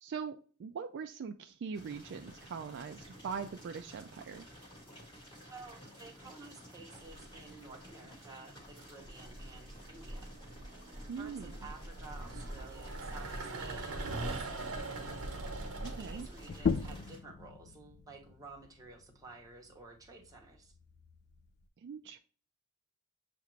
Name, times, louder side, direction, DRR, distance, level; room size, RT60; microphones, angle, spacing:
voice 1, 0.0-4.5 11.1-11.5 15.8-16.3 21.8-22.2, right 6 dB, 55° right, 7 dB, 0.3 m, -41 dB
sound 1, 1.7-17.2, equal, 20° left, 1.4 m, -53 dB
voice 2, 5.4-10.3 11.2-20.7, right 3 dB, 15° right, 0 dB, 0.9 m, -53 dB
sound 2, 7.1-7.5 8.6-16.9, right 2 dB, 70° right, 1.0 m, -42 dB
sound 3, 16.5-21.7, left 5 dB, 50° left, 0.3 m, -39 dB
6.9 x 2.5 x 3.1 m, 0.40 s
head